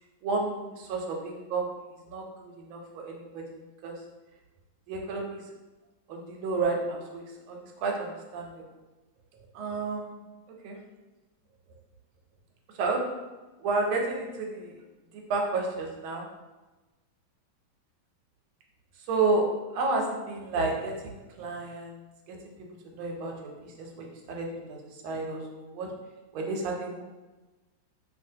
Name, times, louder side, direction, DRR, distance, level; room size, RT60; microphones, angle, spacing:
voice 1, 0.2-1.7 2.0-4.0 4.9-5.4 6.1-8.6 9.5-10.2 10.6-10.8 12.7-13.0 13.6-14.7 15.3-16.3 19.0-19.5 19.7-22.4 22.8-23.3 23.6-25.9 26.3-27.0, right 3 dB, 90° right, 1 dB, 1.4 m, -31 dB
2.8 x 2.7 x 2.6 m, 1.2 s
omnidirectional pair, 2.2 m